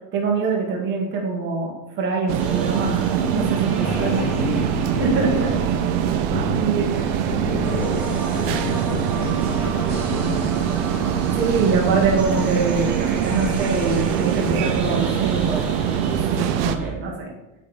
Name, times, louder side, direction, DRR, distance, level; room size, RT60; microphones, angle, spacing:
voice 1, 0.1-4.2 5.0-5.5 6.5-6.9 7.5-7.6 11.4-17.3, right 4 dB, 30° right, -1 dB, 1.5 m, -24 dB
sound 1, 2.3-16.8, right 9 dB, 80° right, 0.7 m, -23 dB
sound 2, 2.4-16.9, right 2 dB, 5° right, 0.6 m, -36 dB
voice 2, 3.8-5.8 6.3-6.9 7.3-10.7, left 6 dB, 40° left, 4 dB, 0.4 m, -31 dB
sound 3, 4.0-16.9, right 5 dB, 45° right, 1.4 m, -36 dB
8.5 x 3.5 x 4.1 m, 0.98 s
cardioid pair, 180°, 35 cm